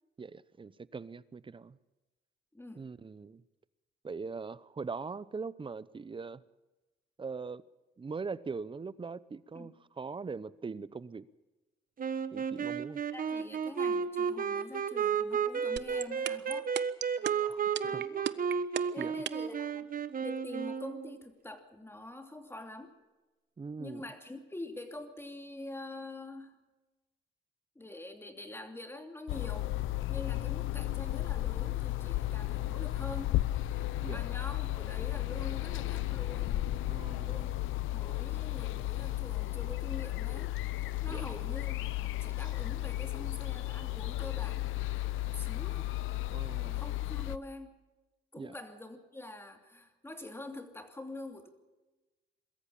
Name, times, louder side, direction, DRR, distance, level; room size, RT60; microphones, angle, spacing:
voice 1, 0.2-1.8 2.8-3.4 4.0-6.4 7.2-7.6 8.0-11.3 12.3-13.0 17.4-17.6 17.9-18.0 19.0-19.1 23.6-24.0 34.0-34.2 36.9-37.5 41.1-41.2 46.3-46.9 48.4-48.5, right 4 dB, 25° right, 18 dB, 0.8 m, -41 dB
voice 2, 2.5-2.8 9.5-9.7 13.1-16.7 17.8-18.3 18.9-19.9 20.2-23.0 23.8-26.6 27.7-29.8 30.1-33.5 34.1-37.0 37.2-37.5 37.9-40.6 41.0-44.9 45.2-45.9 46.7-47.8 48.3-51.5, left 2 dB, 10° left, 6 dB, 2.8 m, -45 dB
sound 1, 12.0-21.2, right 7 dB, 45° right, 1.3 m, -33 dB
sound 2, 15.8-19.5, right 11 dB, 60° right, 0.8 m, -34 dB
sound 3, 29.3-47.4, left 16 dB, 85° left, 0.7 m, -34 dB
22.0 x 14.0 x 8.7 m, 1.1 s
cardioid pair, 90°, 20 cm